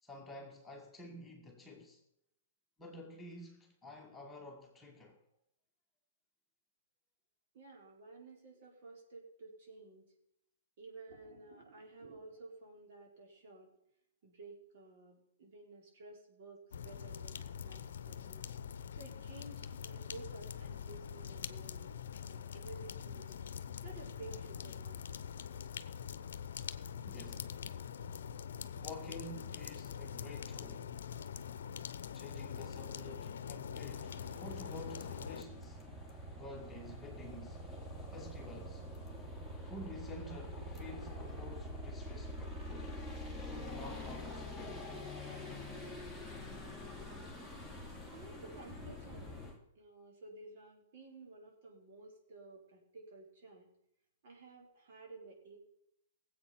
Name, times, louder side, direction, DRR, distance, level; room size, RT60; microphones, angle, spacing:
voice 1, 0.0-2.0 2.8-5.2 27.1-27.7 28.7-30.9 32.1-35.8 36.4-37.7 38.1-38.9 39.6-43.0 43.5-44.9, left 1 dB, 10° left, 2.1 m, -50 dB
voice 2, 7.5-10.1 10.8-13.7 14.2-18.5 19.0-21.9 22.3-23.3 23.8-25.1 48.0-49.4 49.8-53.7 54.2-55.6, right 3 dB, 55° right, 4.6 m, -53 dB
sound 1, 16.7-35.4, left 7 dB, 70° left, 0.7 m, -44 dB
sound 2, 33.8-49.6, left 1 dB, 5° right, 2.8 m, -45 dB
18.0 x 8.0 x 6.0 m
hypercardioid pair, 135°, 0 cm